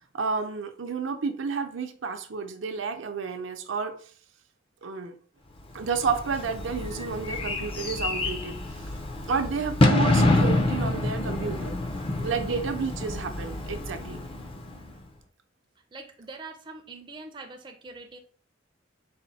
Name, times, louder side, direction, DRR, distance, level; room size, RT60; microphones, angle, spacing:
voice 1, 0.1-3.9 4.8-5.2 5.7-8.6 9.3-11.7 12.2-14.2, right 5 dB, 80° right, 6 dB, 0.6 m, -31 dB
Bird / Fireworks, 5.8-15.0, left 2 dB, 30° left, 0.5 m, -27 dB
voice 2, 10.7-11.0 12.4-12.7 15.9-18.2, right 3 dB, 25° right, 4 dB, 0.5 m, -44 dB
4.2 x 2.1 x 4.0 m, 0.43 s
head